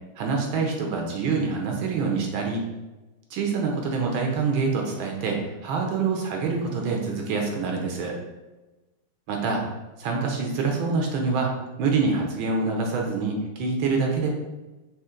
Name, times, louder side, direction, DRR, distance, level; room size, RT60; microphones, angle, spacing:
voice 1, 0.2-2.6 3.3-8.1 9.3-9.6 10.0-11.5 11.8-14.3, right 4 dB, 75° right, 1 dB, 1.5 m, -26 dB
4.4 x 2.9 x 3.6 m, 1.1 s
omnidirectional pair, 2.3 m